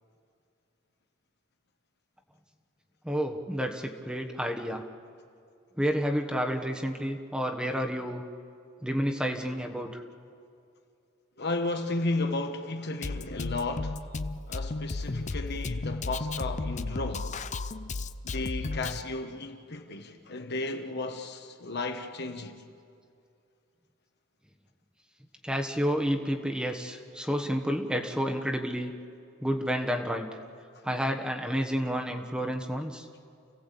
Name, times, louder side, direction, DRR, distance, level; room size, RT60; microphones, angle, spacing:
voice 1, 3.0-4.8 5.8-8.2 8.8-10.0 25.4-28.9 29.4-30.3 30.8-33.1, equal, 5° right, 1.2 m, -30 dB
voice 2, 11.4-14.0 14.5-17.3 18.2-22.6, left 2 dB, 55° left, 1.5 m, -34 dB
Drum kit, 13.0-19.0, left 3 dB, 35° left, 0.6 m, -34 dB
29.5 x 16.5 x 8.5 m
head